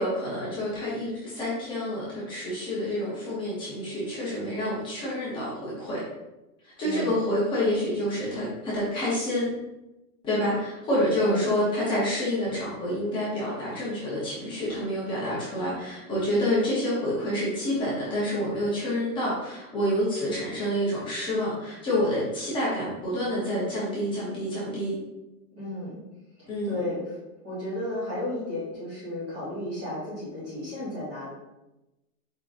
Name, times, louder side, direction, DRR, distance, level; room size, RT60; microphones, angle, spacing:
voice 1, 0.0-6.0 6.8-9.4 10.2-24.9 26.5-26.8, equal, 10° left, -9 dB, 0.7 m, -28 dB
voice 2, 6.8-7.2 11.2-11.5 25.5-26.0 26.4-27.1 27.4-31.3, left 1 dB, 10° right, -10 dB, 0.4 m, -33 dB
4.9 x 3.7 x 2.5 m, 0.99 s
supercardioid pair, 165°, 46 cm